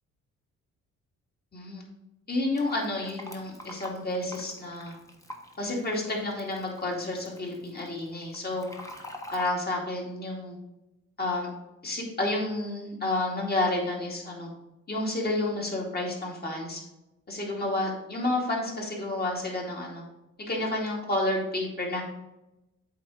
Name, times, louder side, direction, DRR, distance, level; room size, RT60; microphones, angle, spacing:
voice 1, 1.5-1.8 2.3-4.9 5.6-8.7 9.3-10.6 11.2-11.5 11.8-14.5 14.9-16.8 17.3-20.0 20.5-22.0, left 2 dB, 30° left, -2 dB, 2.4 m, -30 dB
Fill (with liquid), 2.6-9.5, left 1 dB, 10° left, 1.1 m, -46 dB
8.3 x 3.7 x 4.9 m, 0.94 s
cardioid pair, 90°, 30 cm